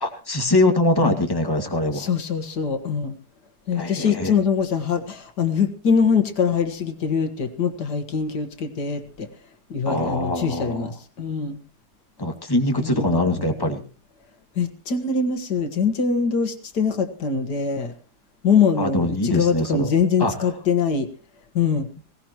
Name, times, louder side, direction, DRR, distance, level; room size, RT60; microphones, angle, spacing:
voice 1, 0.0-2.1 3.7-4.3 9.9-10.9 12.2-13.8 18.8-19.9 20.2-20.3, left 1 dB, 15° left, 4 dB, 2.1 m, -23 dB
voice 2, 1.9-3.1 3.7-9.3 9.7-11.6 12.8-13.5 14.6-17.9 18.4-21.1 21.5-21.9, left 6 dB, 85° left, 8 dB, 2.2 m, -23 dB
20.0 x 18.0 x 3.0 m, 0.36 s
omnidirectional pair, 1.7 m